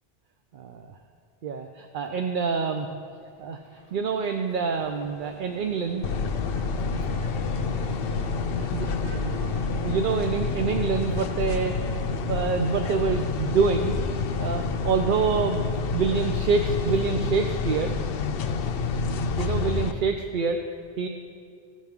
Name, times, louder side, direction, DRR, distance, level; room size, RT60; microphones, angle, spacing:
voice 1, 0.5-0.9 1.4-2.9 3.4-3.6 3.9-6.0 8.7-8.9 9.2-9.3 9.8-11.8 12.3-14.0 14.4-17.9 19.4-20.6 21.0-21.1, right 5 dB, 60° right, 5 dB, 0.6 m, -26 dB
sound 1, 3.1-10.6, equal, 35° right, 2.0 m, -44 dB
sound 2, 6.0-19.9, left 4 dB, 70° left, 0.7 m, -28 dB
15.0 x 7.4 x 3.6 m, 2.2 s
omnidirectional pair, 1.1 m